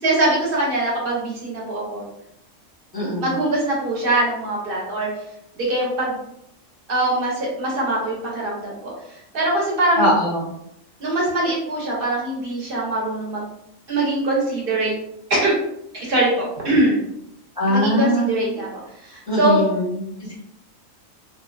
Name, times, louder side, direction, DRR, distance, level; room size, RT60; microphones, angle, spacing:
voice 1, 0.0-2.1 3.2-5.1 5.6-6.2 6.9-8.9 9.3-10.1 11.0-13.5 13.9-14.9 15.3-15.6 15.9-17.0 17.7-18.7 19.0-19.6, right 1 dB, 50° right, -4 dB, 0.8 m, -22 dB
voice 2, 2.9-3.3 10.0-10.4 17.6-18.3 19.3-19.9, equal, 5° right, -9 dB, 0.8 m, -20 dB
2.4 x 2.2 x 2.3 m, 0.79 s
omnidirectional pair, 1.4 m